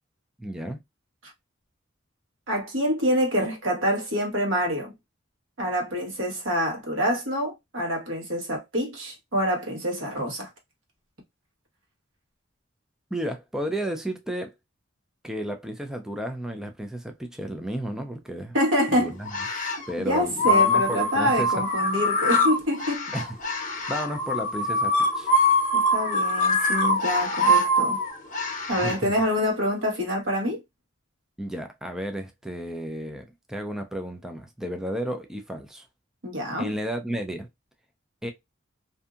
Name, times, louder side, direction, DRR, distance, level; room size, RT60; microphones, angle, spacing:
voice 1, 0.4-0.8 13.1-14.5 15.2-18.6 18.9-19.3 19.9-21.6 23.1-23.3 23.9-25.3 28.8-29.1 31.4-35.9 36.6-37.5 38.2-38.3, equal, 5° right, 0.3 m, -32 dB
voice 2, 2.5-4.9 5.6-10.5 18.5-19.1 20.0-23.1 25.7-28.0 28.7-30.6 36.2-36.7, equal, 85° right, 1.3 m, -26 dB
sound 1, 19.3-19.9 20.4-29.0, left 1 dB, 40° left, 0.7 m, -23 dB
2.6 x 2.6 x 2.3 m
head